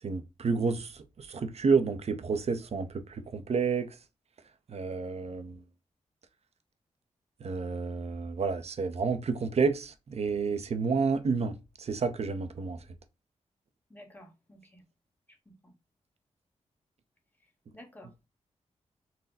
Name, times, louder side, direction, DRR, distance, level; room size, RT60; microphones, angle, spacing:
voice 1, 0.0-4.0 4.7-5.6 7.4-12.8, right 5 dB, 60° right, 0.7 m, -30 dB
voice 2, 13.9-14.8 15.3-15.7 17.7-18.3, left 1 dB, 15° left, 1.1 m, -53 dB
4.0 x 2.2 x 4.0 m
cardioid pair, 85°, 12 cm